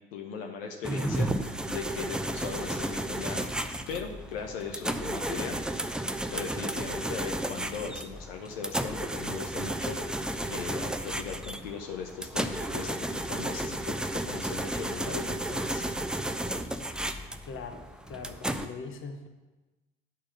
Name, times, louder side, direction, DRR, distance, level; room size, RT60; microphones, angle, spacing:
voice 1, 0.1-3.4 3.9-5.6 6.3-15.9, left 6 dB, 70° left, 3 dB, 0.9 m, -39 dB
sound 1, 0.8-18.7, right 1 dB, 5° right, 0.4 m, -33 dB
voice 2, 17.5-19.3, left 4 dB, 40° left, 6 dB, 1.1 m, -41 dB
9.4 x 4.3 x 5.9 m, 1.2 s
figure-of-eight pair, 65°, 30 cm